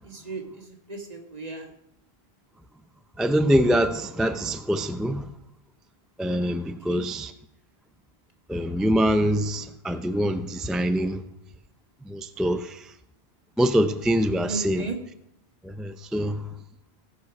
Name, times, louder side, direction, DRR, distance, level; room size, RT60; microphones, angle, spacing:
voice 1, 0.0-1.7 6.9-7.0 14.5-15.0, right 3 dB, 40° right, 1.8 m, -36 dB
voice 2, 3.2-5.3 6.2-7.3 8.5-11.2 12.1-12.9 13.6-14.8 15.6-16.5, equal, ahead, 0.3 m, -24 dB
16.5 x 6.2 x 6.0 m
omnidirectional pair, 1.1 m